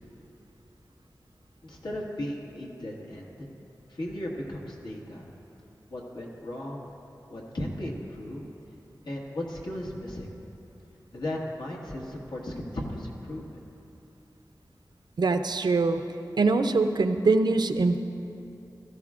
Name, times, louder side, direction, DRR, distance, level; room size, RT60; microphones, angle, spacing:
voice 1, 1.6-3.5 3.9-5.3 5.9-6.9 7.3-8.5 9.0-10.3 11.1-13.6, left 1 dB, 90° left, -2 dB, 1.6 m, -36 dB
voice 2, 15.2-16.0 16.4-18.0, right 3 dB, 70° right, 8 dB, 0.5 m, -23 dB
16.0 x 13.5 x 2.5 m, 2.8 s
wide cardioid pair, 90°, 7 cm